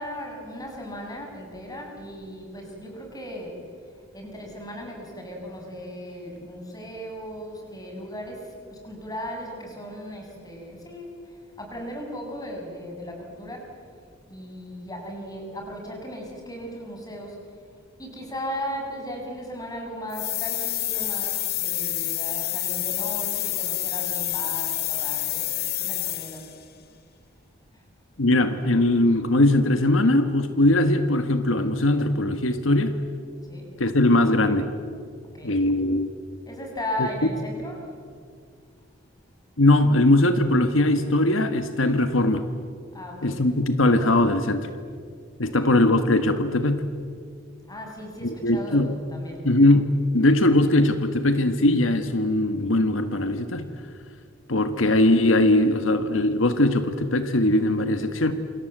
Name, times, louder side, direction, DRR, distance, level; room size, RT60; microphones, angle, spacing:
voice 1, 0.0-3.6 4.1-13.7 14.3-17.5 18.0-26.5 27.7-27.8 33.5-33.7 35.3-35.5 36.5-37.9 42.9-43.4 45.4-45.7 47.7-49.4, equal, 20° left, 1 dB, 6.7 m, -37 dB
sound 1, 20.1-26.6, left 15 dB, 50° left, 1.7 m, -28 dB
voice 2, 28.2-32.9 33.8-34.7 35.4-36.1 37.0-37.1 39.6-42.4 43.2-44.7 45.4-46.9 48.2-48.9 49.4-53.7 54.5-58.3, left 1 dB, 85° left, 9 dB, 1.5 m, -20 dB
28.0 x 26.0 x 8.0 m, 2.2 s
head